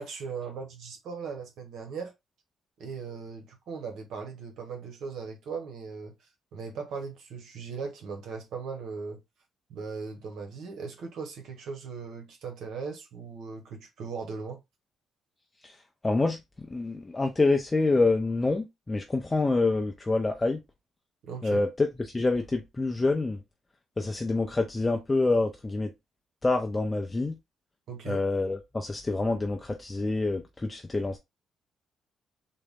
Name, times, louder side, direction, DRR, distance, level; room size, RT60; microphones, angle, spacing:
voice 1, 0.0-2.1 2.8-6.1 6.5-9.2 9.7-14.6 21.2-21.6 27.9-28.2, right 5 dB, 75° right, 0.8 m, -38 dB
voice 2, 16.0-20.6 21.4-23.4 24.0-25.9 26.4-27.4 28.1-31.2, left 3 dB, 20° left, 0.5 m, -27 dB
3.7 x 2.1 x 3.5 m
cardioid pair, 90°, 0 cm